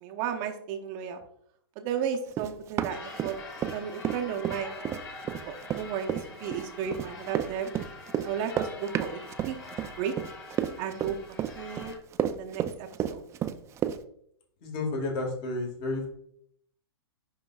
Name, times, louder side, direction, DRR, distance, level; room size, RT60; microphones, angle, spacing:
voice 1, 0.0-1.2 1.8-3.3 3.7-4.8 5.5-7.7 8.2-9.2 9.5-9.6 10.0-10.1 10.8-11.9 12.2-13.2, right 8 dB, 40° right, 4 dB, 0.8 m, -34 dB
Run, 2.3-3.8 4.0-14.0, right 10 dB, 20° right, 0.4 m, -31 dB
sound 1, 2.9-12.0, left 3 dB, 25° left, 1.9 m, -44 dB
voice 2, 14.6-16.1, left 2 dB, 40° left, 2 dB, 1.9 m, -31 dB
10.5 x 3.8 x 2.3 m, 0.68 s
hypercardioid pair, 115°, 13 cm